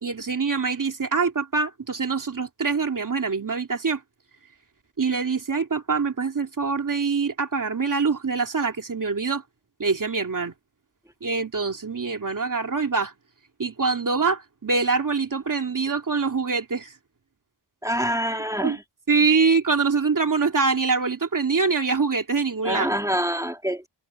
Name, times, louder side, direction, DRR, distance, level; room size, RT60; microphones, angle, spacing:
voice 1, 0.0-4.0 5.0-9.4 9.8-10.5 11.2-13.1 13.6-16.9 18.6-18.8 19.1-22.9, right 4 dB, 45° right, 2.8 m, -24 dB
voice 2, 17.8-18.8 22.6-23.9, equal, 5° right, 2.5 m, -26 dB
wide cardioid pair, 100°, 45 cm